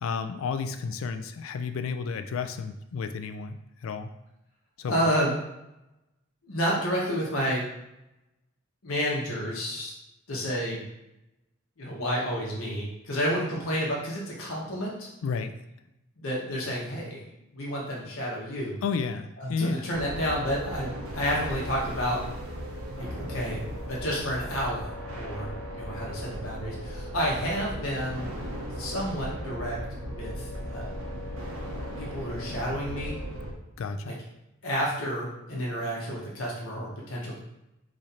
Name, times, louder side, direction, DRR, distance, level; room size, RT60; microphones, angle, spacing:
voice 1, 0.0-4.1 4.8-4.9 15.2-15.5 18.8-19.9 33.8-34.2, left 5 dB, 70° left, 8 dB, 0.3 m, -32 dB
voice 2, 4.9-5.4 6.4-7.7 8.8-9.9 10.3-10.8 11.8-15.1 16.2-18.8 19.4-22.3 23.0-23.6 23.9-28.3 28.8-31.0 32.0-33.2 34.0-34.2 34.6-37.4, equal, 90° left, -4 dB, 0.9 m, -30 dB
sound 1, 19.9-33.5, equal, 85° right, 0.7 m, -37 dB
3.1 x 2.5 x 4.1 m, 0.89 s
head